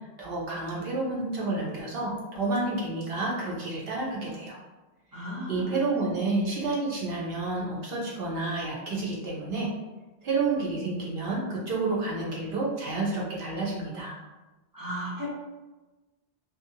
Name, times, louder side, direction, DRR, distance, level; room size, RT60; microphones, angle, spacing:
voice 1, 0.2-4.6 5.5-9.7 10.2-14.1, right 3 dB, 75° right, -4 dB, 0.8 m, -30 dB
voice 2, 5.1-5.7 14.7-15.3, equal, 30° right, -7 dB, 0.5 m, -35 dB
2.5 x 2.0 x 2.6 m, 1.1 s
omnidirectional pair, 1.0 m